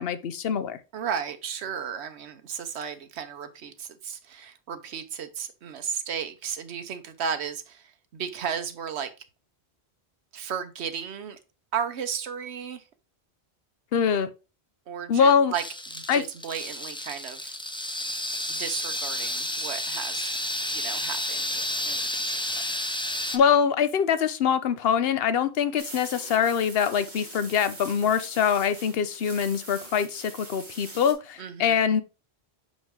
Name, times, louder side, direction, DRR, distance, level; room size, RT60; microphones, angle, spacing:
voice 1, 0.0-0.8 13.9-14.3 15.1-15.5 16.1-16.2 23.3-32.0, left 7 dB, 65° left, 0.9 m, -24 dB
voice 2, 0.9-9.1 10.3-11.4 11.7-12.8 14.9-15.6 15.9-17.5 18.5-20.3 20.7-22.4 31.4-31.8, right 7 dB, 80° right, 1.1 m, -34 dB
sound 1, 15.5-23.4, left 1 dB, 5° left, 0.4 m, -31 dB
sound 2, 25.8-31.1, right 2 dB, 45° right, 1.8 m, -43 dB
5.3 x 5.2 x 3.6 m
omnidirectional pair, 1.1 m